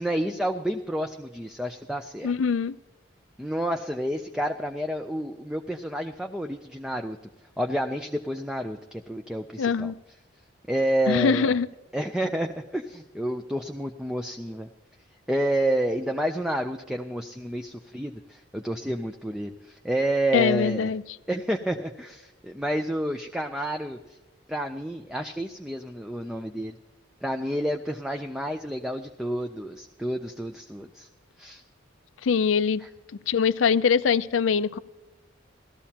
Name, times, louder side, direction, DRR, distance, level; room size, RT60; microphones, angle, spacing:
voice 1, 0.0-2.3 3.4-7.2 7.6-9.9 10.7-11.5 11.9-14.7 15.3-20.9 21.3-24.0 24.5-26.7 27.2-31.1 31.4-31.6 32.8-32.9, right 1 dB, 5° right, 4 dB, 0.4 m, -29 dB
voice 2, 2.2-2.8 9.6-10.0 11.1-11.7 20.3-21.0 32.2-32.8 33.3-34.8, left 6 dB, 80° left, 16 dB, 0.4 m, -23 dB
18.5 x 13.5 x 2.9 m, 1.1 s
head